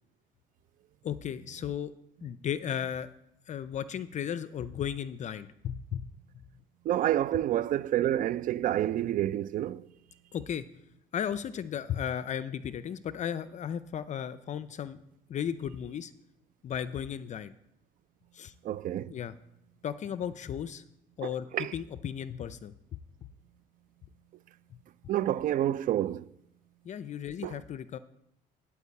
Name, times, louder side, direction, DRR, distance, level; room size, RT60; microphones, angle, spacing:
voice 1, 1.0-1.9 2.2-3.1 3.5-6.0 10.3-10.6 11.1-15.0 15.3-16.1 16.6-17.5 18.3-18.5 19.1-19.3 19.8-20.8 21.2-21.5 21.7-23.0 24.7-24.8 26.8-28.0, left 9 dB, 45° left, 0.5 m, -35 dB
voice 2, 6.8-9.9 18.6-19.1 21.2-21.7 25.1-26.3 27.4-27.5, right 12 dB, 55° right, 0.4 m, -29 dB
11.5 x 4.7 x 8.2 m
cardioid pair, 110°, 17 cm